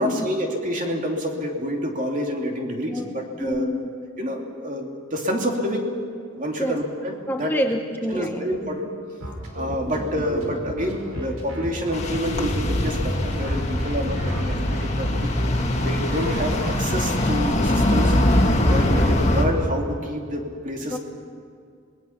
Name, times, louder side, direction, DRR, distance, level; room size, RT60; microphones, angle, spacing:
voice 1, 0.0-3.7 4.2-5.9 6.3-7.5 8.1-8.9 9.5-15.3 15.8-18.2 18.7-21.0, equal, 35° right, 1 dB, 2.7 m, -28 dB
voice 2, 2.9-3.8 6.6-6.8 7.3-8.4 9.9-10.0 15.6-15.8 18.9-19.1 20.8-21.0, equal, 10° left, 4 dB, 0.8 m, -28 dB
sound 1, 9.2-16.7, equal, 80° right, 5.6 m, -33 dB
sound 2, 11.9-19.4, left 1 dB, 30° left, 1.9 m, -22 dB
26.5 x 20.5 x 5.8 m, 2.3 s
head